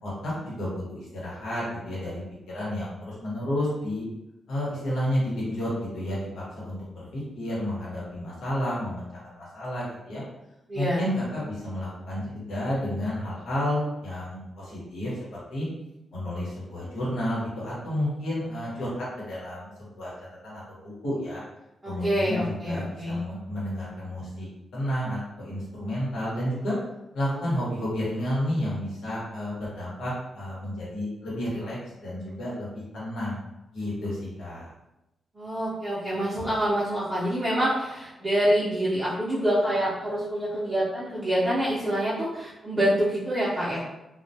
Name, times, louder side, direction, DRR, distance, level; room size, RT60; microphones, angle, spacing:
voice 1, 0.0-2.2 2.5-4.0 4.5-10.2 10.7-15.7 16.1-20.1 20.4-21.4 21.8-24.5 24.7-26.8 27.1-33.4 33.7-34.7, left 1 dB, 90° left, -8 dB, 1.0 m, -31 dB
voice 2, 10.7-11.0 21.8-23.2 35.3-43.8, equal, 20° right, -9 dB, 0.5 m, -26 dB
sound 1, 37.6-38.2, left 2 dB, 75° left, 0.4 m, -43 dB
2.2 x 2.1 x 2.7 m, 0.93 s
wide cardioid pair, 125°, 0 cm